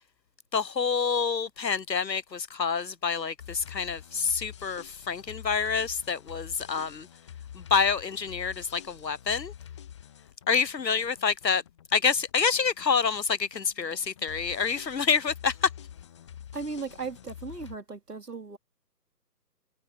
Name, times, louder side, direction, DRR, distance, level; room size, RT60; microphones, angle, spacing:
voice 1, 0.5-7.1 7.5-9.5 10.5-11.6 11.9-15.7, left 5 dB, 80° left, 0.9 m, -27 dB
sound 1, 3.4-17.8, left 9 dB, 15° left, 1.6 m, -47 dB
voice 2, 16.5-18.6, right 4 dB, 70° right, 2.9 m, -37 dB
figure-of-eight pair, 150°, 50 cm